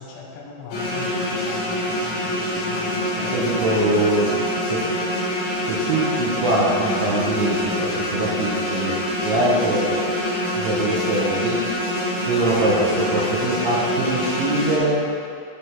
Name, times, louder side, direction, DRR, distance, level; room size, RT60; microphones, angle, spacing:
voice 1, 0.0-4.5, left 5 dB, 75° left, -3 dB, 3.3 m, -40 dB
sound 1, 0.7-14.8, left 1 dB, 60° left, 2.0 m, -25 dB
voice 2, 3.2-4.3 4.7-4.8 5.7-8.9 9.2-9.9 10.5-11.6 12.3-15.0, right 2 dB, 75° right, -5 dB, 3.0 m, -22 dB
9.5 x 5.0 x 3.6 m, 2.4 s
omnidirectional pair, 6.0 m